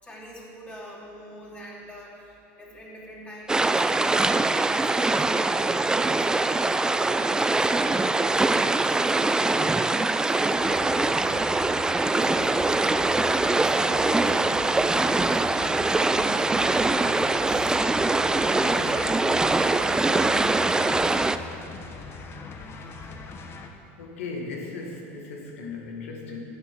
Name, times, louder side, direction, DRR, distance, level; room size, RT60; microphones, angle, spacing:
voice 1, 0.0-4.3 4.6-6.7 7.1-8.1 9.0-13.1 13.4-16.1 17.4-21.5, equal, 20° left, -6 dB, 3.1 m, -44 dB
sound 1, 3.5-21.4, right 2 dB, 10° right, 0.4 m, -23 dB
sound 2, 10.5-23.7, left 4 dB, 35° left, 1.1 m, -41 dB
voice 2, 24.0-26.4, left 3 dB, 90° left, 1 dB, 1.7 m, -37 dB
9.7 x 8.0 x 7.6 m, 2.8 s
supercardioid pair, 95°, 7 cm